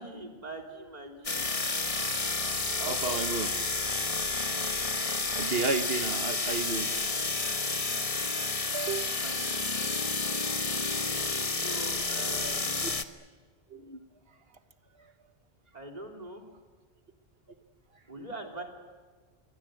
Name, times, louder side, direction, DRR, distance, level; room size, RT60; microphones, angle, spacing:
voice 1, 0.0-1.4 2.8-3.2 6.1-6.3 9.0-9.4 11.6-12.9 15.7-16.4 18.1-18.6, right 2 dB, 35° right, 2 dB, 3.7 m, -42 dB
sound 1, 1.2-13.0, left 3 dB, 30° left, 1.2 m, -30 dB
voice 2, 2.9-3.5 5.3-6.9 8.7-9.2 12.8-12.9 13.7-14.0, right 4 dB, 60° right, 8 dB, 1.7 m, -32 dB
27.5 x 23.0 x 7.9 m, 1.4 s
omnidirectional pair, 1.1 m